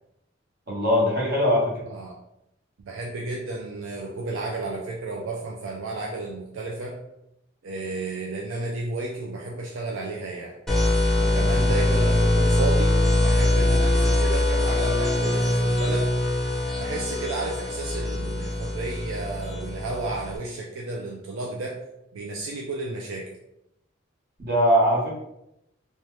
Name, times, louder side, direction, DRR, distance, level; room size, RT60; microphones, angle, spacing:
voice 1, 0.7-1.9 24.4-25.1, equal, 50° right, -5 dB, 1.0 m, -21 dB
voice 2, 2.8-7.0 7.6-10.6 11.2-16.1 16.7-21.8 22.1-23.2, right 3 dB, 80° right, -1 dB, 0.4 m, -32 dB
sound 1, 10.7-20.4, left 1 dB, ahead, 0.4 m, -23 dB
2.8 x 2.2 x 3.1 m, 0.82 s
head